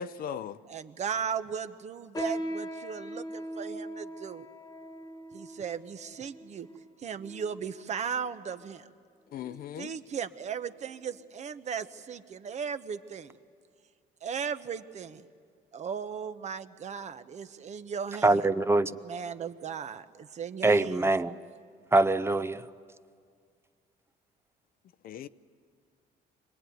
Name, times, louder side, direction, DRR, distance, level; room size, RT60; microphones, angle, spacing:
voice 1, 0.0-0.6 9.3-9.9 25.0-25.3, left 8 dB, 60° left, 0.7 m, -38 dB
voice 2, 0.7-4.5 5.3-6.7 7.0-8.9 9.8-13.4 14.2-15.3 15.7-18.5 19.0-21.1, right 7 dB, 45° right, 0.9 m, -37 dB
sound 1, 2.1-7.8 8.5-8.6 9.3-9.6 10.0-10.2 10.9-11.0, equal, 20° left, 1.4 m, -40 dB
voice 3, 18.2-19.0 20.6-21.3 21.9-22.6, right 2 dB, 15° right, 0.6 m, -24 dB
25.5 x 19.5 x 9.3 m
cardioid pair, 110°, 17 cm